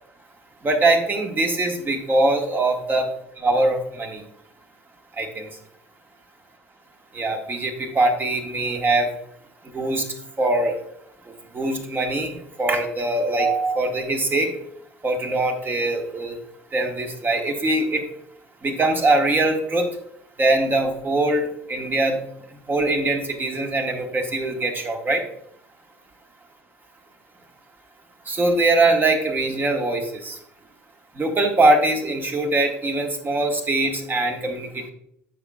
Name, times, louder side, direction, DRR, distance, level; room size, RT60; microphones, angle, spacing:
voice 1, 0.6-3.1 3.4-4.2 5.1-5.5 7.1-9.1 9.6-10.8 11.2-14.5 15.0-16.4 16.7-18.1 18.6-19.9 20.4-22.2 22.5-25.2 28.2-30.4 31.1-34.9, right 2 dB, 25° right, 3 dB, 1.7 m, -22 dB
12.5 x 6.0 x 2.4 m, 0.71 s
figure-of-eight pair, 65°, 8 cm